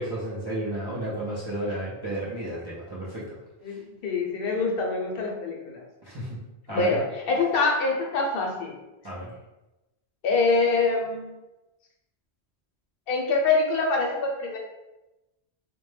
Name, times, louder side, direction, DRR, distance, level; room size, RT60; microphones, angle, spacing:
voice 1, 0.0-3.4 3.7-3.8 6.0-6.4 6.7-7.0 9.0-9.3, right 1 dB, 40° right, -8 dB, 0.3 m, -32 dB
voice 2, 3.6-5.8 6.7-8.7 10.2-11.3 13.1-14.6, left 3 dB, 65° left, 0 dB, 0.7 m, -25 dB
2.1 x 2.1 x 3.1 m, 1.0 s
omnidirectional pair, 1.1 m